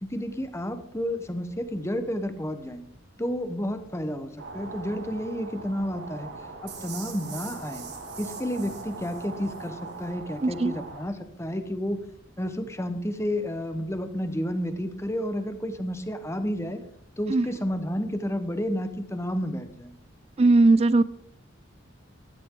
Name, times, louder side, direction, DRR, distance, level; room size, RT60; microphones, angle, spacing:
voice 1, 0.0-2.8 3.2-6.3 6.6-7.9 8.2-12.0 12.4-16.8 17.2-19.9, equal, 15° left, 9 dB, 1.1 m, -31 dB
sound 1, 4.4-11.0, right 3 dB, 75° right, 2.4 m, -41 dB
sound 2, 6.7-9.7, right 9 dB, 55° right, 2.5 m, -44 dB
voice 2, 10.4-10.7 17.3-17.5 20.4-21.0, right 2 dB, 30° right, 16 dB, 0.4 m, -19 dB
14.0 x 12.5 x 3.8 m, 0.70 s
head